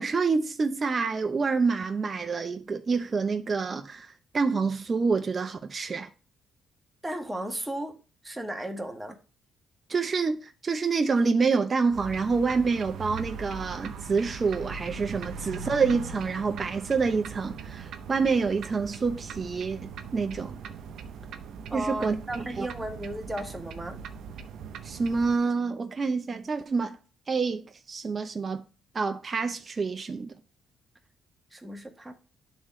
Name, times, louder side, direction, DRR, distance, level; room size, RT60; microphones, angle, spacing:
voice 1, 0.0-4.1 4.3-6.1 9.9-20.6 21.7-22.7 24.8-27.0 27.3-28.6 28.9-30.3, right 4 dB, 35° right, 0.6 m, -27 dB
voice 2, 7.0-7.9 8.2-9.2 21.7-24.0 31.5-32.1, right 1 dB, 10° right, 1.3 m, -35 dB
sound 1, 11.9-25.4, right 6 dB, 75° right, 0.6 m, -40 dB
11.0 x 3.7 x 3.2 m
cardioid pair, 90°, 0 cm